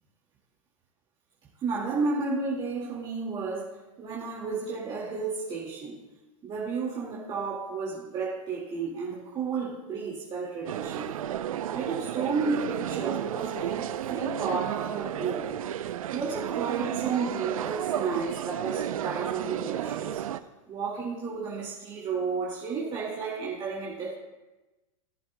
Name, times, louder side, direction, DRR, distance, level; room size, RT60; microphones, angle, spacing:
voice 1, 1.6-3.7 4.0-6.0 6.4-11.2 11.7-15.6 16.1-20.2 20.7-24.1, right 4 dB, 30° right, -5 dB, 2.1 m, -32 dB
sound 1, 10.7-20.4, right 11 dB, 80° right, 0.6 m, -32 dB
18.0 x 7.7 x 2.2 m, 1.1 s
hypercardioid pair, 120°, 17 cm